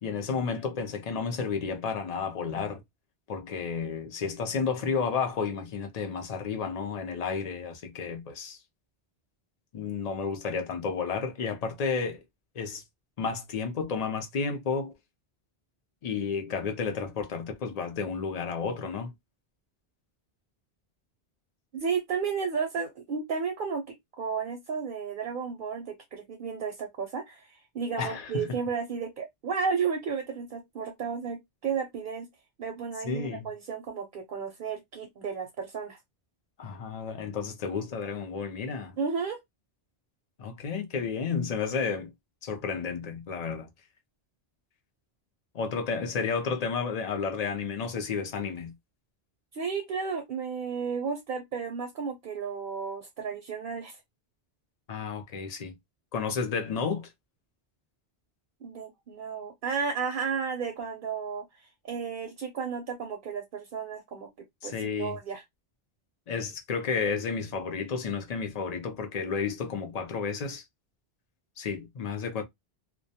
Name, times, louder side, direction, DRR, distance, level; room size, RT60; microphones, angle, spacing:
voice 1, 0.0-2.8 3.3-8.6 9.7-12.2 12.6-12.8 13.2-14.9 16.0-19.1 28.0-28.5 33.0-33.5 36.6-39.0 40.4-42.1 42.4-43.7 45.5-48.7 54.9-55.8 56.1-57.1 64.6-65.2 66.3-70.6 71.6-72.4, left 5 dB, 50° left, 0.5 m, -32 dB
voice 2, 21.7-32.3 32.6-36.0 39.0-39.4 49.5-54.0 58.6-64.3 64.6-65.4, right 6 dB, 65° right, 0.7 m, -33 dB
2.2 x 2.1 x 2.6 m
omnidirectional pair, 1.0 m